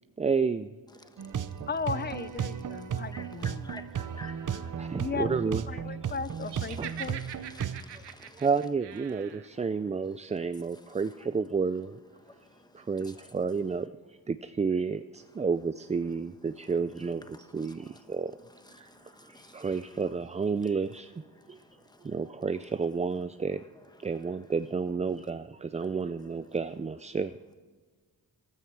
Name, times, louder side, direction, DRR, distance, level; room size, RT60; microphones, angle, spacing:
voice 1, 0.2-0.7 3.9-6.1 6.8-6.9 7.9-8.1 8.3-12.0 12.7-18.3 18.7-18.9 19.2-21.1 21.5-21.6 22.0-23.6 24.0-27.4, right 5 dB, 20° right, 0.3 m, -31 dB
voice 2, 1.1-1.5 3.1-4.9 6.7-8.4 12.3-12.9 17.3-17.4 18.8-19.7 21.5-22.1, left 2 dB, 10° left, 1.2 m, -51 dB
sound 1, 1.2-7.8, right 8 dB, 50° right, 0.7 m, -35 dB
voice 3, 1.7-3.7 4.9-5.4 5.7-7.2, left 5 dB, 25° left, 0.6 m, -36 dB
Laughter, 6.5-9.5, right 10 dB, 85° right, 0.9 m, -43 dB
14.5 x 13.0 x 4.7 m
cardioid pair, 80°, 39 cm